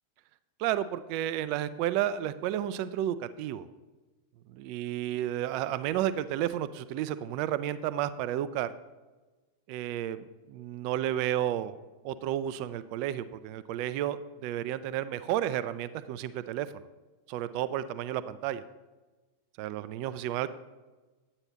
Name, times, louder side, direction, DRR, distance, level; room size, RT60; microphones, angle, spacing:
voice 1, 0.6-3.7 4.5-8.7 9.7-11.8 12.0-16.9 17.3-18.6 19.6-20.5, right 11 dB, 45° right, 14 dB, 0.4 m, -32 dB
9.8 x 8.7 x 2.9 m, 1.2 s
figure-of-eight pair, 90°, 0 cm